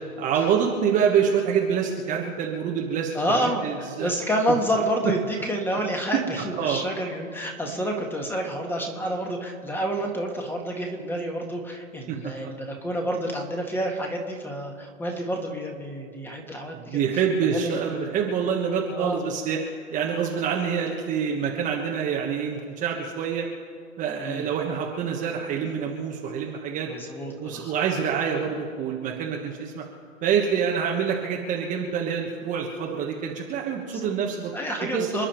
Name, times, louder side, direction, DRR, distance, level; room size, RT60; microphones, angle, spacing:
voice 1, 0.2-3.2 3.6-4.1 6.1-6.2 6.6-6.8 12.1-12.3 16.7-19.6 19.9-23.4 24.0-26.9 27.4-29.8 30.2-34.5 34.8-35.3, right 7 dB, 20° right, 0 dB, 1.3 m, -26 dB
voice 2, 3.1-17.0 17.5-18.0 18.9-19.2 24.2-24.5 26.9-27.7 33.9-34.1 34.5-35.3, equal, 5° left, 2 dB, 1.7 m, -29 dB
28.0 x 10.0 x 4.5 m, 2.1 s
hypercardioid pair, 145°, 41 cm